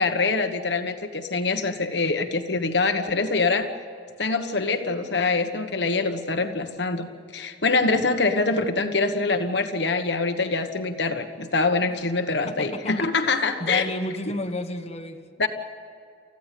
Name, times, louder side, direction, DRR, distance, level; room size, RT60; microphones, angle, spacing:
voice 1, 0.0-3.7 4.2-7.1 7.3-13.9 15.4-15.5, left 3 dB, 65° left, 7 dB, 1.3 m, -24 dB
voice 2, 12.5-13.1 13.6-15.2, left 1 dB, 35° left, 5 dB, 1.4 m, -31 dB
29.0 x 15.0 x 8.4 m, 2.3 s
head